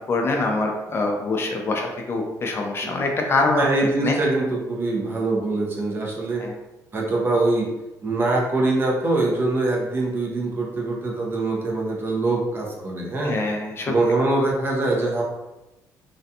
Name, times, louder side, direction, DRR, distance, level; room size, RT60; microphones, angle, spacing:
voice 1, 0.0-3.6 4.0-4.2 6.4-6.5 13.2-13.9, left 3 dB, 35° left, 1 dB, 0.3 m, -24 dB
voice 2, 3.5-6.4 6.9-7.7 8.0-13.4 13.8-15.2, right 2 dB, 30° right, -3 dB, 0.6 m, -23 dB
2.4 x 2.2 x 2.7 m, 1.0 s
cardioid pair, 125°, 7 cm